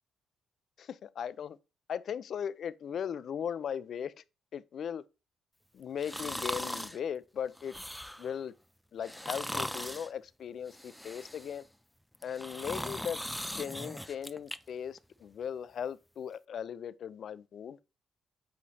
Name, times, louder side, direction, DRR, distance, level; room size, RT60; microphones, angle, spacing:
voice 1, 0.8-1.6 1.9-4.1 4.5-5.0 5.7-7.7 8.2-8.5 8.9-11.7 12.2-13.2 13.6-17.8, left 8 dB, 60° left, 0.4 m, -38 dB
sound 1, 6.0-7.0 7.6-8.3 9.0-10.1 10.7-11.6 12.1-14.6 15.0-15.1, equal, 5° left, 0.4 m, -39 dB
8.5 x 3.2 x 4.0 m
cardioid pair, 90°, 0 cm